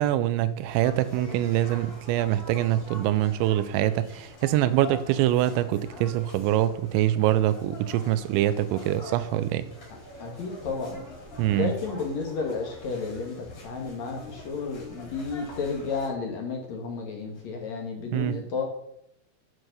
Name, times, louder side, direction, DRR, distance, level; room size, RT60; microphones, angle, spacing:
voice 1, 0.0-9.7 11.4-11.7 18.1-18.3, right 13 dB, 90° right, 2.9 m, -24 dB
sound 1, 0.6-16.1, left 2 dB, 35° left, 4.0 m, -45 dB
voice 2, 10.2-11.0 11.5-18.6, left 4 dB, 60° left, 1.9 m, -32 dB
8.9 x 7.3 x 6.6 m
omnidirectional pair, 5.2 m